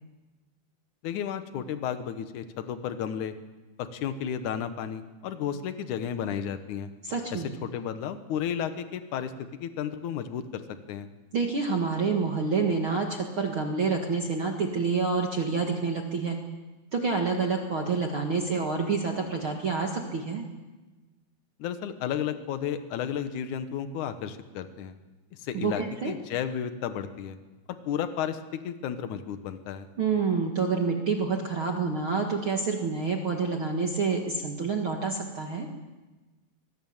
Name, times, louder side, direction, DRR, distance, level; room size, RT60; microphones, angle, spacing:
voice 1, 1.0-3.3 3.8-6.9 7.3-9.3 9.6-11.1 21.6-24.9 25.4-27.4 27.9-29.9, left 8 dB, 70° left, 9 dB, 1.9 m, -33 dB
voice 2, 7.0-7.5 11.3-16.4 16.9-20.4 25.5-26.1 30.0-35.7, right 4 dB, 65° right, 2 dB, 1.2 m, -28 dB
24.0 x 20.0 x 7.3 m, 1.2 s
omnidirectional pair, 5.2 m